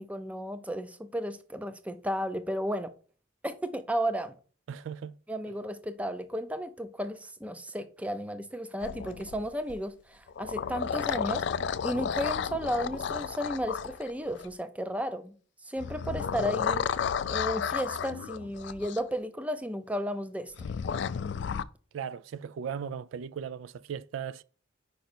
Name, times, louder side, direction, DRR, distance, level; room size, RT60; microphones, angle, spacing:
voice 1, 0.0-2.9 3.4-4.3 5.3-11.5 11.8-15.3 15.6-16.9 17.3-20.7, equal, 5° right, 0.4 m, -33 dB
voice 2, 4.7-5.1 5.5-5.6 21.9-24.4, right 7 dB, 75° right, 0.3 m, -37 dB
sound 1, 8.8-9.8 10.3-14.5 15.8-19.0 20.6-21.6, left 7 dB, 60° left, 0.3 m, -32 dB
5.2 x 5.2 x 4.3 m
head